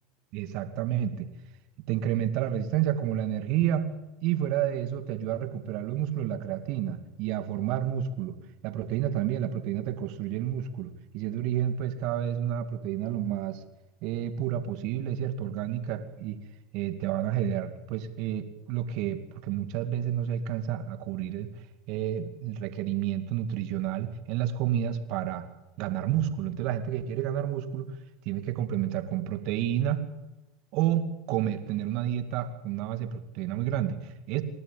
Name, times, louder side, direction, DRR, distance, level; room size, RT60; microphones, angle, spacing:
voice 1, 0.3-1.3 1.9-3.9 4.2-8.4 8.6-13.6 14.0-16.4 16.7-21.5 21.9-25.4 25.8-27.9 28.3-30.1 30.7-34.4, right 10 dB, 60° right, 9 dB, 2.4 m, -30 dB
28.5 x 12.5 x 8.8 m, 1.1 s
hypercardioid pair, 85°, 0 cm